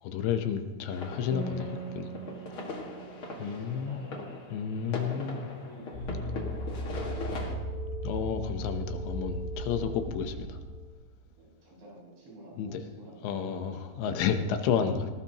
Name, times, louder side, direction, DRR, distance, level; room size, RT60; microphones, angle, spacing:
voice 1, 0.0-2.1 3.4-4.0 4.5-5.4 8.0-10.6 12.6-12.8 13.2-15.0, left 7 dB, 80° left, 7 dB, 3.2 m, -31 dB
sound 1, 0.9-7.5, left 2 dB, 45° left, 1.9 m, -40 dB
sound 2, 1.3-4.5, right 4 dB, 40° right, 2.6 m, -42 dB
voice 2, 3.4-5.0 5.3-5.9 6.8-7.8 11.4-14.1 14.9-15.0, right 1 dB, 80° right, -5 dB, 8.9 m, -50 dB
sound 3, 5.9-10.9, right 1 dB, 60° left, 5.4 m, -36 dB
19.0 x 19.0 x 3.0 m, 1.4 s
omnidirectional pair, 5.1 m